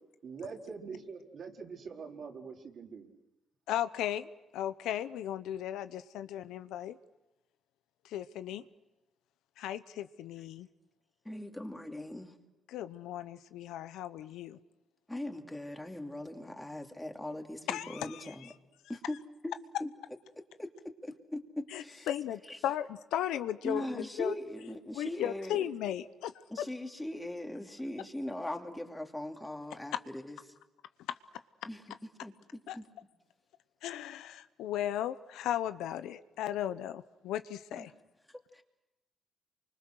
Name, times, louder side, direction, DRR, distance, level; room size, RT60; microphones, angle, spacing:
voice 1, 0.2-3.1, right 5 dB, 55° right, 1 dB, 3.7 m, -44 dB
voice 2, 3.7-7.0 8.0-8.6 9.6-10.7 12.7-14.6 17.7-18.5 21.7-24.3 24.9-26.4 32.7-32.8 33.8-37.9, left 11 dB, 90° left, 12 dB, 0.9 m, -36 dB
voice 3, 11.2-12.3 15.1-18.5 18.9-19.2 19.4-19.5 19.8-19.9 20.6-22.1 22.5-22.6 23.6-25.6 26.5-30.4 31.6-31.8 32.2-32.8 37.7-37.9 38.5-38.6, left 1 dB, 10° left, 3 dB, 2.7 m, -40 dB
29.0 x 25.0 x 6.5 m, 1.0 s
cardioid pair, 90°, 0 cm